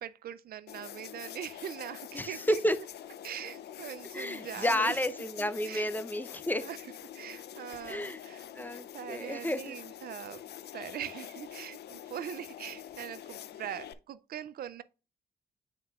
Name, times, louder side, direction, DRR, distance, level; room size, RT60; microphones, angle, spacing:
voice 1, 0.0-2.6 3.2-5.0 5.4-5.9 6.5-6.8 7.1-8.5 8.9-10.4 10.7-14.8, right 10 dB, 60° right, 0.4 m, -42 dB
sound 1, 0.7-13.9, left 10 dB, 70° left, 0.5 m, -46 dB
voice 2, 2.1-2.8 4.1-6.7 7.8-8.2 8.6-9.8, left 1 dB, 10° left, 0.6 m, -31 dB
7.4 x 5.8 x 2.3 m
cardioid pair, 85°, 17 cm